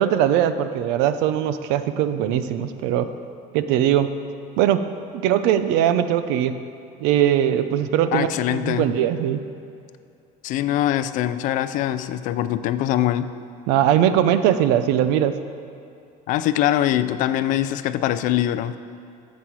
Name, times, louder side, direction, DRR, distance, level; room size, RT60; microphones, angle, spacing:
voice 1, 0.0-3.1 3.5-4.1 4.6-4.8 5.2-6.6 7.0-9.4 13.7-15.3, right 10 dB, 85° right, 11 dB, 0.6 m, -20 dB
voice 2, 8.1-8.9 10.4-13.3 16.3-18.8, left 12 dB, 50° left, 13 dB, 0.4 m, -23 dB
12.5 x 7.5 x 4.6 m, 2.6 s
cardioid pair, 175°, 17 cm